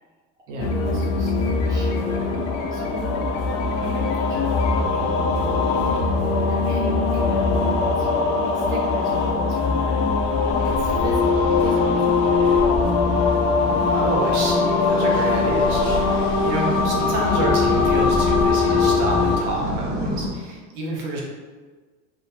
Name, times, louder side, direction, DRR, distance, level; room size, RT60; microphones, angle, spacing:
voice 1, 0.5-6.0 6.4-12.7, right 1 dB, 10° right, -6 dB, 0.5 m, -36 dB
sound 1, 0.6-19.4, left 4 dB, 80° left, 0.6 m, -21 dB
Race car auto racing, 10.1-19.7, equal, 15° left, 0.8 m, -36 dB
voice 2, 13.9-21.2, right 2 dB, 65° right, -2 dB, 0.8 m, -28 dB
sound 2, 15.2-20.3, equal, 35° right, 0.8 m, -30 dB
2.5 x 2.0 x 3.0 m, 1.4 s
supercardioid pair, 130°, 37 cm